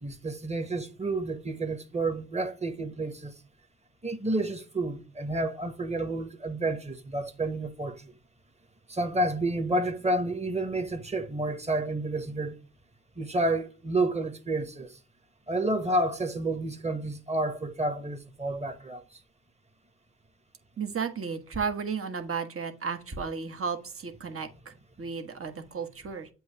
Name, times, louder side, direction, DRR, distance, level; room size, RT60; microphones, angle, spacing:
voice 1, 0.0-3.3 4.0-8.0 8.9-12.5 13.2-15.0 15.5-19.0, right 2 dB, 20° right, 1.4 m, -30 dB
voice 2, 20.8-26.3, right 5 dB, 45° right, 1.3 m, -34 dB
7.7 x 2.8 x 5.8 m
supercardioid pair, 50°, 30 cm